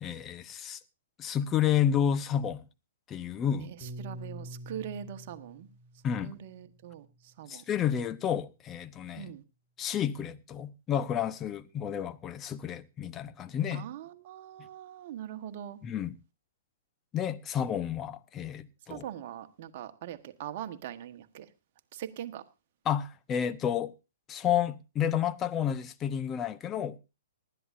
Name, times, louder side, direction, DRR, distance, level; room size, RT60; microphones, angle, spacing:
voice 1, 0.0-0.8 1.2-2.6 3.1-3.7 6.0-6.3 7.5-9.3 9.8-13.8 15.8-16.1 17.1-19.0 22.9-23.9 24.3-27.0, left 9 dB, 25° left, 0.7 m, -30 dB
voice 2, 3.6-5.7 6.2-7.6 9.1-9.4 13.7-15.8 18.9-21.5 21.9-22.4, right 10 dB, 50° right, 1.2 m, -42 dB
Piano, 3.8-8.2, right 1 dB, ahead, 5.5 m, -47 dB
19.5 x 12.5 x 2.6 m
hypercardioid pair, 120°, 0 cm